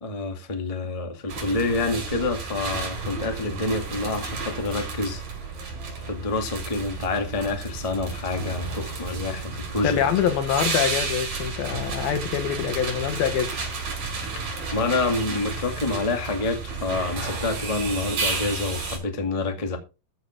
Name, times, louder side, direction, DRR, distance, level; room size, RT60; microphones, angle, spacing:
voice 1, 0.0-5.2 6.0-10.0 14.7-19.8, left 3 dB, 25° left, 0.7 m, -27 dB
sound 1, 1.3-19.0, right 4 dB, 55° right, 6.5 m, -32 dB
voice 2, 9.8-13.5, left 9 dB, 70° left, 3.0 m, -25 dB
14.5 x 5.1 x 6.1 m
omnidirectional pair, 4.8 m